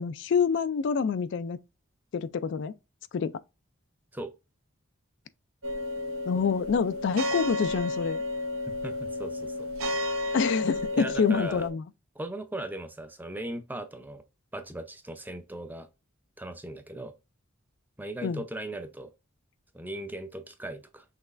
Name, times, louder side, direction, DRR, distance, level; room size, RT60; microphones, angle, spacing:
voice 1, 0.0-1.6 2.1-2.7 3.1-3.4 6.3-8.2 10.3-11.8 18.2-18.4, left 6 dB, 60° left, 0.3 m, -27 dB
sound 1, 5.6-11.7, left 2 dB, 90° right, 0.9 m, -32 dB
voice 2, 8.7-9.7 10.9-11.6 12.2-14.2 14.5-15.9 16.4-17.1 18.0-19.1 19.7-21.0, right 1 dB, 10° right, 0.5 m, -38 dB
5.9 x 3.2 x 2.5 m
head